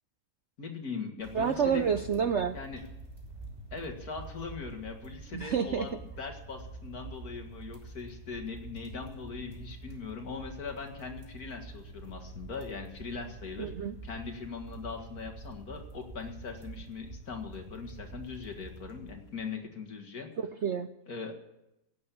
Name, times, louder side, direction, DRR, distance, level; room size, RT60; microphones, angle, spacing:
voice 1, 0.6-1.8 2.5-2.8 3.7-20.3 21.1-21.3, left 5 dB, 60° left, 4 dB, 2.4 m, -40 dB
sound 1, 1.2-19.5, right 2 dB, 25° right, 3.3 m, -46 dB
voice 2, 1.3-2.6 5.3-5.9 13.6-13.9 20.4-20.9, right 7 dB, 60° right, 9 dB, 0.7 m, -29 dB
16.5 x 8.7 x 8.5 m, 0.88 s
omnidirectional pair, 1.8 m